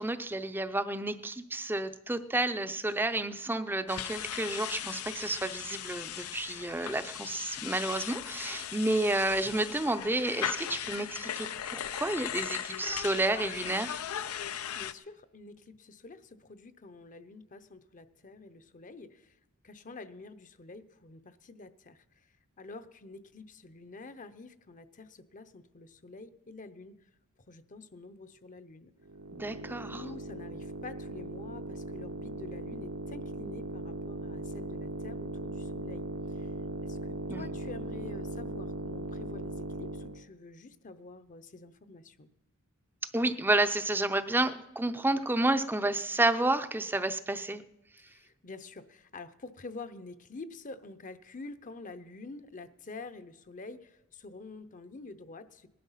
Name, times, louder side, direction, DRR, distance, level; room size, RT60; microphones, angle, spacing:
voice 1, 0.0-14.0 29.3-30.0 37.3-37.4 43.1-47.6, right 2 dB, 10° right, 11 dB, 0.6 m, -30 dB
sound 1, 3.9-14.9, left 10 dB, 85° left, 0.6 m, -38 dB
voice 2, 14.7-19.3 19.6-27.0 27.5-28.9 29.9-36.1 36.3-36.5 36.8-42.3 48.0-55.7, left 3 dB, 35° left, 12 dB, 0.8 m, -48 dB
sound 2, 29.0-40.2, right 1 dB, 80° right, 1.2 m, -39 dB
18.5 x 12.0 x 5.7 m, 0.96 s
head